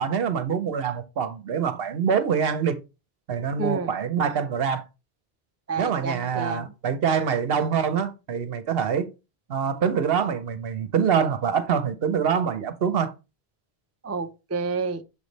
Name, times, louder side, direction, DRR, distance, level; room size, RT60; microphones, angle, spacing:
voice 1, 0.0-2.8 3.3-4.8 5.8-9.1 9.5-13.1, right 7 dB, 65° right, 0.9 m, -25 dB
voice 2, 3.6-3.9 5.7-6.7 14.0-15.0, right 4 dB, 25° right, 0.3 m, -29 dB
6.9 x 3.4 x 4.0 m
omnidirectional pair, 1.1 m